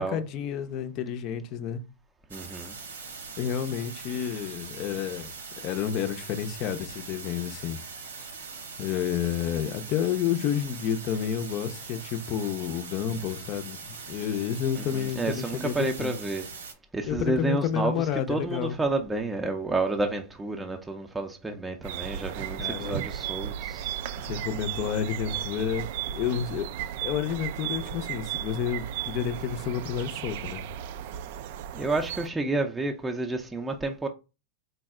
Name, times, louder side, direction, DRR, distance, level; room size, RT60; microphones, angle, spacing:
voice 1, 0.0-1.8 3.4-5.3 5.6-7.8 8.8-16.2 17.1-18.8 22.6-23.0 24.2-25.9 26.1-26.7 27.0-30.6, left 9 dB, 45° left, 0.6 m, -30 dB
voice 2, 2.3-2.7 14.8-16.4 16.9-24.0 31.7-34.1, right 2 dB, 10° right, 0.5 m, -30 dB
sound 1, 2.3-16.7, right 4 dB, 85° right, 1.1 m, -42 dB
sound 2, 21.8-32.3, right 10 dB, 60° right, 0.3 m, -35 dB
4.0 x 2.1 x 3.6 m
hypercardioid pair, 100°, 0 cm